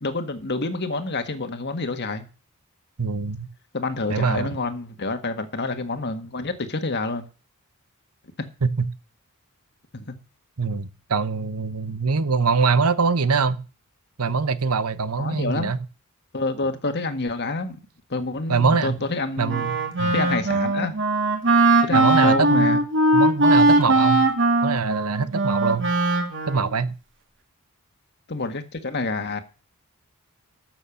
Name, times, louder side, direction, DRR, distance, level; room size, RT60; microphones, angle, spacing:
voice 1, 0.0-2.2 3.7-7.3 9.9-10.0 15.2-15.7 16.3-17.8 18.1-19.6 20.1-20.9 21.8-22.8 28.3-29.4, left 3 dB, 50° left, 1.7 m, -28 dB
voice 2, 3.0-3.5 4.1-4.5 8.6-8.9 10.6-13.6 14.2-15.8 18.5-19.0 19.4-20.2 21.9-22.8 23.1-24.2 24.6-25.9 26.5-26.9, right 4 dB, 90° right, 1.0 m, -23 dB
Wind instrument woodwind instrument, 19.5-26.8, right 2 dB, 55° right, 2.5 m, -20 dB
12.0 x 7.1 x 7.0 m
head